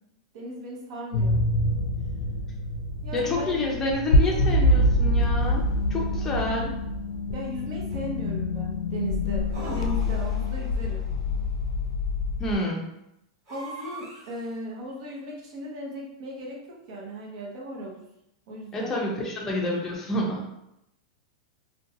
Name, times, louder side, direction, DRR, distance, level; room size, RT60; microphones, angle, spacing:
voice 1, 0.3-1.4 3.0-3.6 7.3-11.1 13.5-18.0 18.5-18.9, right 1 dB, 55° right, -2 dB, 0.8 m, -37 dB
sound 1, 1.1-12.6, left 1 dB, 85° left, 0.4 m, -25 dB
voice 2, 3.1-6.8 12.4-12.9 18.7-20.5, left 1 dB, 15° left, -2 dB, 0.5 m, -28 dB
sound 2, 3.2-3.3 4.2-4.9 6.1-6.9 9.5-10.6 13.5-14.5, right 2 dB, 30° right, 1.0 m, -43 dB
2.6 x 2.2 x 2.6 m, 0.84 s
supercardioid pair, 155°, 3 cm